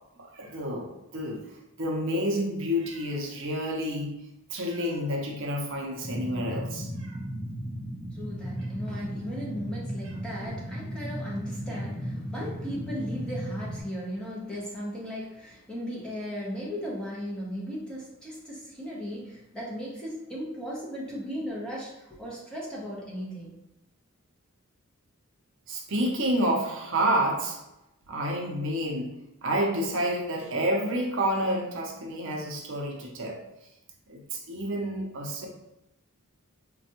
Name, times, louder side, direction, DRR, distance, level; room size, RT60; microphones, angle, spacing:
voice 1, 0.2-4.2 4.5-7.2 25.7-27.6 28.1-29.1 29.4-33.4 34.1-35.5, equal, 55° right, 0 dB, 0.6 m, -29 dB
sound 1, 6.0-13.8, equal, 20° left, 1.3 m, -35 dB
voice 2, 8.1-23.5, equal, 5° left, -6 dB, 0.7 m, -36 dB
4.1 x 2.2 x 2.8 m, 0.89 s
head